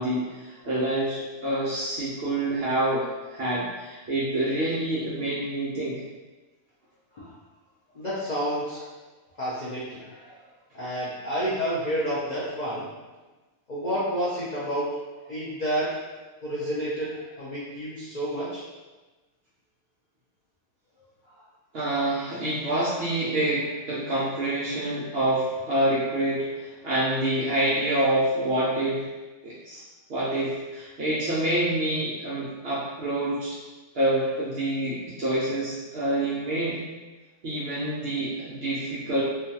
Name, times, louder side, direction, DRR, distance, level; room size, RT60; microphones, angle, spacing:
voice 1, 0.0-3.1 3.3-6.0 21.7-29.1 29.4-29.8 30.1-33.6 33.9-36.8 37.4-39.2, right 1 dB, 65° right, -8 dB, 0.6 m, -27 dB
voice 2, 7.9-8.8 9.4-10.4 10.7-12.8 13.7-14.9 15.2-16.0 16.4-18.6 21.3-21.4, equal, 85° left, -9 dB, 0.4 m, -30 dB
2.4 x 2.3 x 2.6 m, 1.2 s
omnidirectional pair, 1.5 m